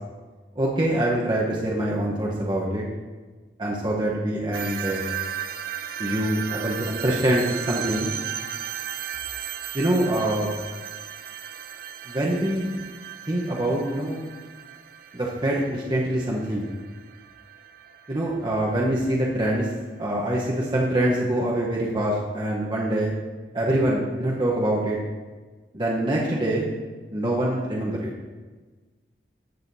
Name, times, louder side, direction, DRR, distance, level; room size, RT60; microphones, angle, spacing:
voice 1, 0.6-2.8 3.6-5.2 6.0-8.1 9.7-10.5 12.1-12.7 13.3-14.2 15.1-16.7 18.1-19.7 20.0-23.1 23.5-25.0 25.7-26.7 27.1-28.1, right 1 dB, 25° right, -4 dB, 0.9 m, -24 dB
sound 1, 4.5-19.5, right 10 dB, 55° right, 0.4 m, -36 dB
14.5 x 6.4 x 2.7 m, 1.4 s
head